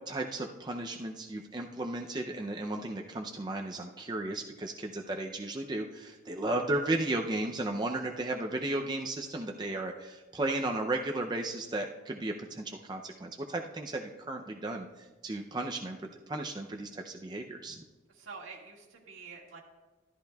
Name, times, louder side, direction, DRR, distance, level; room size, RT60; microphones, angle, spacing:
voice 1, 0.1-17.8, right 2 dB, 20° right, 3 dB, 0.4 m, -34 dB
voice 2, 18.1-19.6, right 4 dB, 90° right, -2 dB, 1.9 m, -47 dB
13.0 x 11.5 x 2.3 m, 1.2 s
head